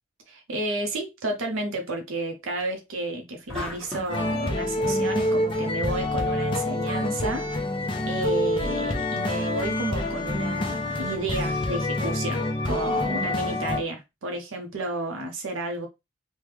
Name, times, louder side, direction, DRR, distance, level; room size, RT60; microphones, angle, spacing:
voice 1, 0.3-7.5 8.1-15.9, right 2 dB, 85° right, 0.7 m, -31 dB
sound 1, 3.5-4.4, left 1 dB, 5° left, 1.0 m, -35 dB
sound 2, 4.1-13.8, left 1 dB, 25° left, 0.5 m, -27 dB
3.3 x 2.1 x 3.1 m
head